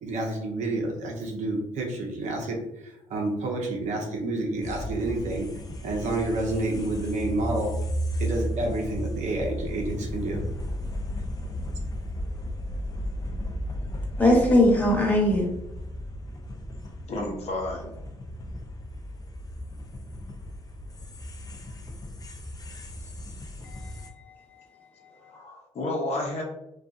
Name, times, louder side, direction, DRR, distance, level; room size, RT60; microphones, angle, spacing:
voice 1, 0.0-5.5 5.8-7.7 8.2-10.4, right 2 dB, 70° right, 1 dB, 0.7 m, -29 dB
sound 1, 4.6-24.1, equal, 30° left, 0.5 m, -34 dB
voice 2, 14.2-15.5 23.6-24.3 25.2-25.3, left 1 dB, 10° left, -3 dB, 1.0 m, -21 dB
voice 3, 17.1-17.9 25.3-26.4, left 2 dB, 55° left, -1 dB, 0.8 m, -31 dB
2.5 x 2.3 x 2.4 m, 0.86 s
supercardioid pair, 70°, 13 cm